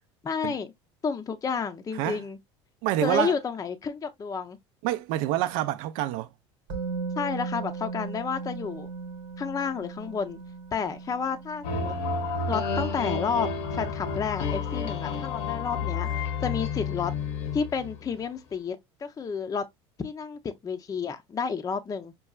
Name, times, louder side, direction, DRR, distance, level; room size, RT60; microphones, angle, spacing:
voice 1, 0.2-0.7 1.0-2.4 3.0-4.6 7.2-8.9 9.4-10.4 10.7-11.9 12.5-16.1 16.4-17.1 17.5-19.6 20.0-22.1, left 6 dB, 25° left, 0.5 m, -31 dB
voice 2, 2.8-3.4 4.8-6.3, right 14 dB, 70° right, 0.5 m, -27 dB
Musical instrument, 6.7-14.6 14.9-15.0, right 4 dB, 90° right, 1.2 m, -38 dB
sound 1, 11.6-18.2, left 5 dB, 80° left, 0.9 m, -30 dB
5.3 x 2.3 x 2.2 m
hypercardioid pair, 85°, 14 cm